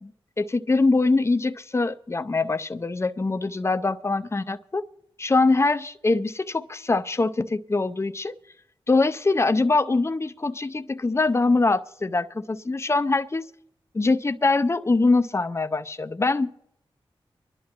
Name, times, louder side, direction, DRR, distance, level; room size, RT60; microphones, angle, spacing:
voice 1, 0.4-4.8 5.2-8.3 8.9-13.5 13.9-16.7, left 3 dB, 25° left, 0.6 m, -23 dB
24.0 x 11.0 x 3.0 m
cardioid pair, 50°, 10 cm